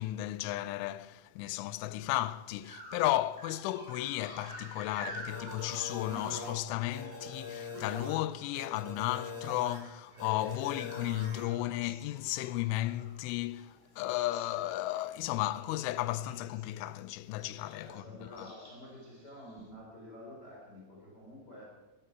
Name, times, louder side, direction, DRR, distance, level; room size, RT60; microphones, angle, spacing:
voice 1, 0.0-18.6, left 15 dB, 80° left, 2.9 m, -34 dB
sound 1, 2.0-2.1 2.6-8.7 9.0-13.8 14.1-14.6 14.9-15.2 15.5-16.8 17.4-17.9 18.4-19.6, equal, 10° right, 5.4 m, -50 dB
sound 2, 5.3-6.5 6.9-8.1 8.5-9.8 10.2-11.4, left 3 dB, 40° right, 8.8 m, -43 dB
voice 2, 17.8-21.6, equal, 20° left, 4.5 m, -49 dB
20.0 x 14.0 x 4.8 m
omnidirectional pair, 5.8 m